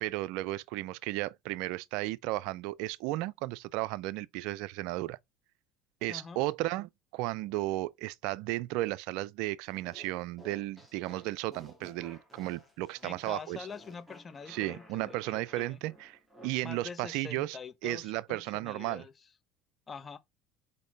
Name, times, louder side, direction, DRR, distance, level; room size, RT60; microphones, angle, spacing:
voice 1, 0.0-5.2 6.0-13.7 14.5-19.0, right 18 dB, 70° right, 0.4 m, -34 dB
voice 2, 6.1-6.4 13.0-15.8 16.6-19.1 19.9-20.2, left 5 dB, 30° left, 1.0 m, -45 dB
sound 1, 9.7-16.5, equal, 5° right, 3.0 m, -55 dB
5.2 x 4.5 x 4.0 m
hypercardioid pair, 85°, 0 cm